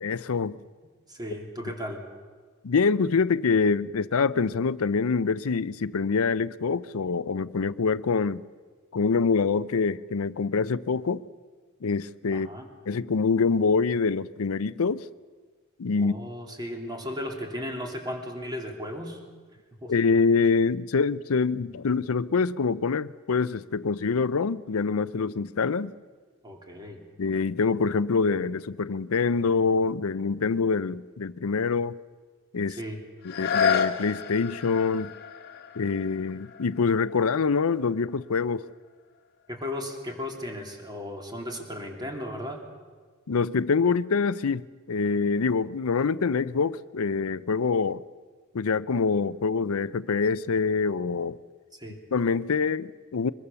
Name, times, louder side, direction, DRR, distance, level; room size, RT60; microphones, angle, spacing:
voice 1, 0.0-0.6 2.6-8.4 8.9-11.2 11.8-12.5 12.9-15.0 15.8-16.2 19.9-25.9 27.2-32.0 32.5-32.8 33.2-35.1 35.8-38.7 43.3-48.0 48.5-51.4 52.1-53.3, left 5 dB, 75° left, 0.6 m, -25 dB
voice 2, 1.1-2.0 12.3-12.7 16.0-19.2 19.8-19.9 26.4-27.0 32.7-33.0 39.5-42.6 51.7-52.0, left 1 dB, 20° right, 3.0 m, -35 dB
sound 1, 33.2-38.9 39.4-39.5, left 7 dB, 50° left, 1.5 m, -31 dB
23.5 x 21.5 x 7.0 m
head